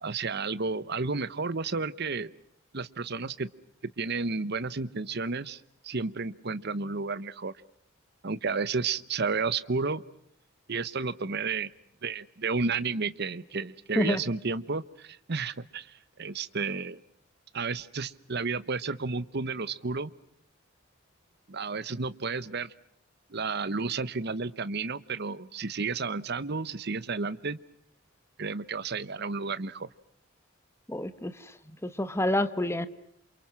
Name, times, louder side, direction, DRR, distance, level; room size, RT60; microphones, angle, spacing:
voice 1, 0.0-2.3 2.7-3.5 4.0-7.5 8.2-10.0 10.7-11.7 12.0-17.0 17.5-20.1 21.5-22.7 23.3-27.6 28.4-29.9, right 4 dB, 50° right, 16 dB, 1.0 m, -32 dB
voice 2, 30.9-31.5 31.8-32.9, left 1 dB, 15° left, 11 dB, 1.3 m, -28 dB
28.5 x 28.0 x 6.1 m, 0.71 s
head